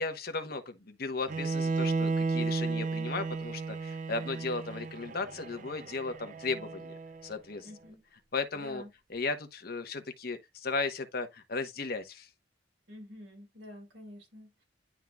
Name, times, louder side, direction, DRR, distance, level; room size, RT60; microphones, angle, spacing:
voice 1, 0.0-6.9 7.2-7.7 8.3-8.8 9.1-12.3, left 3 dB, 55° left, 1.1 m, -35 dB
Bowed string instrument, 1.3-7.3, right 3 dB, 45° right, 0.5 m, -34 dB
voice 2, 7.6-8.0 8.5-8.9 12.9-14.6, equal, 90° right, 5.0 m, -48 dB
11.0 x 3.7 x 2.3 m
head